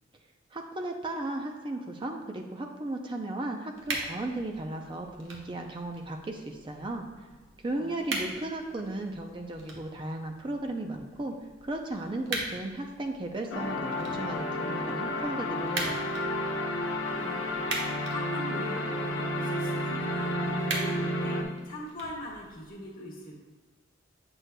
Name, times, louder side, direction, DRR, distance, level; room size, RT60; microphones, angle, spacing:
voice 1, 0.5-7.1 7.6-11.3 11.6-16.0, right 2 dB, 25° right, 3 dB, 0.4 m, -35 dB
sound 1, 3.7-22.7, right 2 dB, 75° right, 1.2 m, -41 dB
voice 2, 7.7-8.3 16.7-23.4, equal, 45° left, -3 dB, 1.5 m, -42 dB
sound 2, 13.5-21.4, left 1 dB, 80° left, 0.9 m, -31 dB
8.0 x 6.1 x 2.2 m, 1.4 s
head